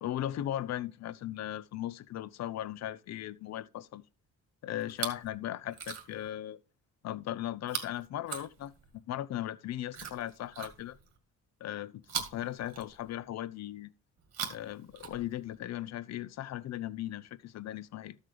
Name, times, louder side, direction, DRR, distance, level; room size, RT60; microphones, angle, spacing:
voice 1, 0.0-4.0 4.6-6.6 7.0-8.7 9.1-11.0 11.6-13.9 14.5-18.2, left 12 dB, 60° left, 0.6 m, -37 dB
Chewing mastication, 4.8-5.3 5.7-6.3 7.6-9.0 9.9-11.2 12.0-13.3 14.2-15.6 16.5-16.6, right 7 dB, 60° right, 2.1 m, -41 dB
12.5 x 7.3 x 3.3 m
cardioid pair, 90°, 30 cm